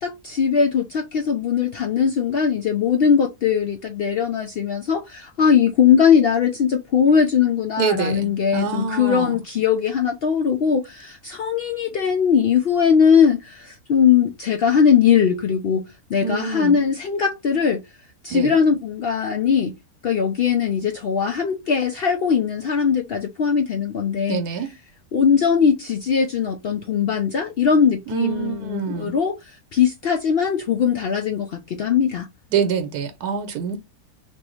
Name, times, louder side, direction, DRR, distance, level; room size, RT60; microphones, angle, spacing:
voice 1, 0.0-17.8 18.2-24.4 25.1-32.3, left 7 dB, 80° left, 0.5 m, -20 dB
voice 2, 7.8-9.4 16.2-16.8 18.3-18.5 24.3-24.8 28.1-29.1 32.5-33.8, right 6 dB, 85° right, 1.2 m, -25 dB
3.0 x 2.6 x 3.0 m
omnidirectional pair, 1.6 m